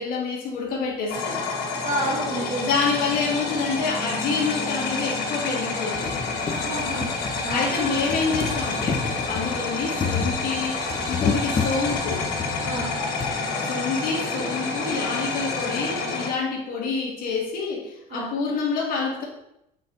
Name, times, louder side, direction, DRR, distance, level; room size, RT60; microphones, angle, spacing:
voice 1, 0.0-1.5 2.6-6.2 7.5-10.8 11.1-12.2 13.6-19.3, left 4 dB, 65° left, -1 dB, 1.9 m, -27 dB
sound 1, 1.1-16.3, left 3 dB, 85° left, 2.0 m, -29 dB
voice 2, 1.8-2.7 6.5-7.1 7.4-7.7 12.6-12.9 18.1-18.3, right 1 dB, 55° right, -6 dB, 1.9 m, -29 dB
sound 2, 3.8-3.9 4.8-4.9 5.4-5.5 5.8-13.3 14.3-14.4 14.6-14.7, left 5 dB, 30° left, 0.9 m, -31 dB
7.4 x 4.4 x 3.9 m, 0.82 s
cardioid pair, 130°, 16 cm